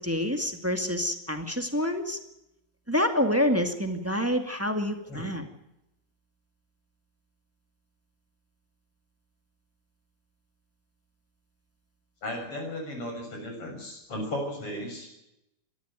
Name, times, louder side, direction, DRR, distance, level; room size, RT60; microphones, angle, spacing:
voice 1, 0.0-2.2 2.9-5.5, equal, 5° right, 6 dB, 1.5 m, -27 dB
voice 2, 5.1-5.4 12.2-15.1, left 1 dB, 50° left, 3 dB, 7.6 m, -35 dB
23.5 x 13.5 x 9.0 m, 0.86 s
omnidirectional pair, 3.3 m